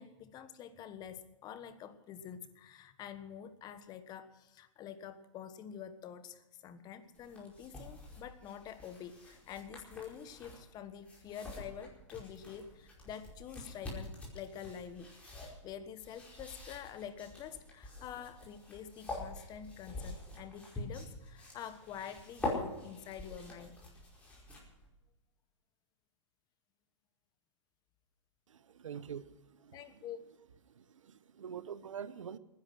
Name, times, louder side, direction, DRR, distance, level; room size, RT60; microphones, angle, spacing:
voice 1, 0.0-23.8 29.7-30.2, left 8 dB, 25° left, 11 dB, 1.3 m, -47 dB
sound 1, 7.1-24.9, left 2 dB, 10° left, 5.0 m, -46 dB
voice 2, 28.5-30.0 30.7-32.4, right 8 dB, 85° right, 17 dB, 0.9 m, -46 dB
19.5 x 10.5 x 6.3 m, 1.0 s
hypercardioid pair, 140°, 16 cm